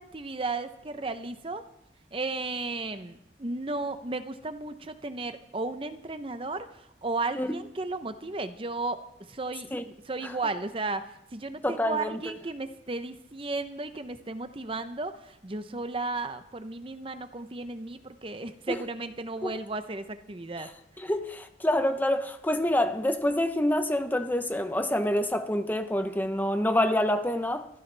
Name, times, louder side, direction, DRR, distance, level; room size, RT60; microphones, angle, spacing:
voice 1, 0.0-1.6 2.1-9.0 9.3-9.7 10.1-20.7, right 3 dB, 30° right, 0.7 m, -34 dB
voice 2, 11.6-12.4 19.4-19.5 20.6-20.7 21.0-27.7, left 1 dB, 10° left, 0.7 m, -27 dB
24.5 x 14.5 x 3.4 m
head